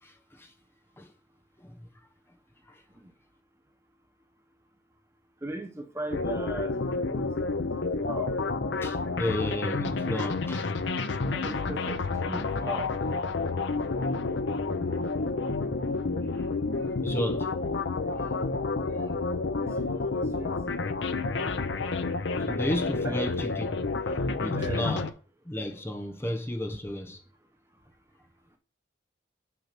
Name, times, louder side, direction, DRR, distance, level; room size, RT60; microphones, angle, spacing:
voice 1, 0.0-0.5 1.0-1.1 1.6-1.9 2.7-2.8 8.8-10.7 16.3-17.5 18.1-18.4 18.9-19.0 22.5-23.9 24.4-25.1 25.4-27.2, left 1 dB, 10° left, 0.9 m, -34 dB
voice 2, 5.4-7.3 7.7-8.3 11.3-12.9 19.6-20.6 23.0-23.2 24.5-24.9, right 1 dB, 15° right, 0.7 m, -38 dB
sound 1, 6.1-25.1, left 3 dB, 65° left, 0.6 m, -30 dB
6.1 x 5.7 x 5.9 m
head